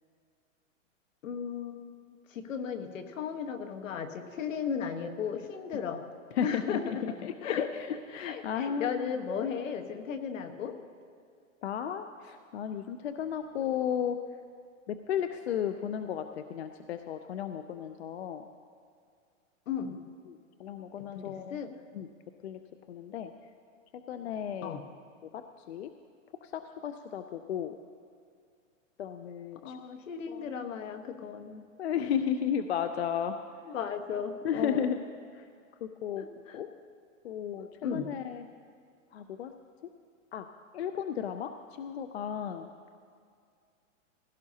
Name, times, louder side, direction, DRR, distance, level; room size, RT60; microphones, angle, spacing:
voice 1, 1.2-2.0 2.3-6.0 6.4-6.8 7.2-7.7 8.1-10.7 19.7-20.0 21.1-21.7 24.6-24.8 29.6-31.7 33.6-34.9 36.2-36.5 37.6-38.1, left 7 dB, 75° left, 7 dB, 1.3 m, -35 dB
voice 2, 6.3-9.1 11.6-14.2 14.9-18.5 20.2-21.6 21.9-22.1 22.4-22.6 22.9-23.3 24.1-24.8 25.2-25.9 26.4-27.7 29.0-29.8 30.3-30.5 31.8-33.4 34.4-35.0 35.3-35.5 35.8-36.3 36.5-36.7 37.2-38.5 39.1-39.5 40.3-40.5 40.7-42.7, left 8 dB, 55° left, 8 dB, 0.5 m, -34 dB
16.5 x 16.0 x 2.8 m, 2.3 s
hypercardioid pair, 175°, 39 cm